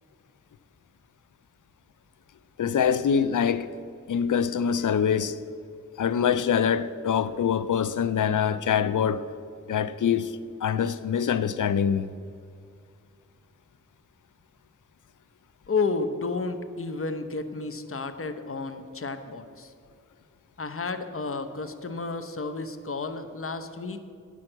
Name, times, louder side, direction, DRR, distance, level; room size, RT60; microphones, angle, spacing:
voice 1, 2.6-3.7 4.1-5.4 6.0-9.2 9.7-12.1, left 7 dB, 80° left, 0.5 m, -24 dB
voice 2, 15.7-19.7 20.6-24.0, left 4 dB, 45° left, 0.8 m, -31 dB
9.8 x 6.2 x 7.8 m
cardioid pair, 45°, 31 cm